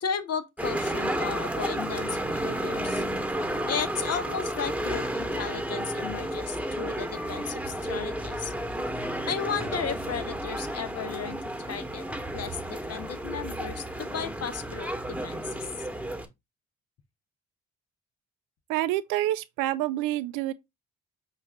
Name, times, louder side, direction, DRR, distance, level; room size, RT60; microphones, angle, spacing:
voice 1, 0.0-3.0 3.7-8.5 9.0-12.0 12.3-14.9 15.2-15.9, left 7 dB, 50° left, 0.8 m, -35 dB
sound 1, 0.6-16.3, right 1 dB, 5° right, 1.1 m, -32 dB
voice 2, 18.7-20.5, right 14 dB, 75° right, 0.5 m, -27 dB
5.5 x 2.4 x 3.5 m
hypercardioid pair, 50°, 33 cm